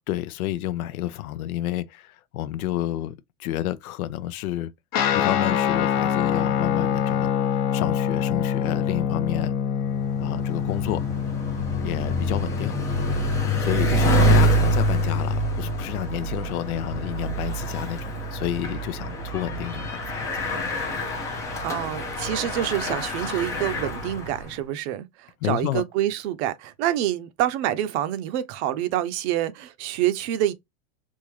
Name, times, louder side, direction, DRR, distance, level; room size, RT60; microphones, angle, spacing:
voice 1, 0.1-3.1 3.4-4.7 5.1-7.3 7.7-9.5 10.2-11.1 11.8-12.8 13.6-20.3 25.4-25.8, left 13 dB, 85° left, 0.6 m, -30 dB
Guitar, 4.9-14.7, left 8 dB, 40° left, 0.8 m, -26 dB
Bicycle, 9.9-24.5, equal, 10° left, 0.3 m, -26 dB
voice 2, 21.6-30.5, right 12 dB, 50° right, 0.6 m, -27 dB
3.6 x 2.6 x 3.0 m
supercardioid pair, 145°, 42 cm